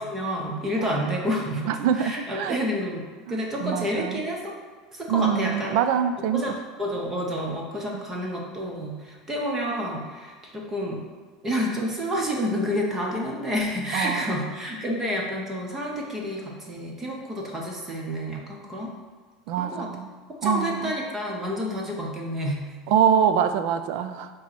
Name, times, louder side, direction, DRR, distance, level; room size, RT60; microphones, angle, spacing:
voice 1, 0.0-1.7 2.0-4.5 4.9-5.7 6.3-6.5 6.8-11.0 11.4-18.9 19.6-19.9 20.4-22.7, equal, 15° right, -1 dB, 0.9 m, -29 dB
voice 2, 0.8-1.2 1.7-2.6 3.3-4.2 5.1-6.4 7.9-8.0 13.9-14.3 19.5-20.1 20.4-20.9 22.9-24.3, right 8 dB, 60° right, 10 dB, 0.4 m, -24 dB
7.2 x 3.1 x 6.0 m, 1.4 s
cardioid pair, 175°, 2 cm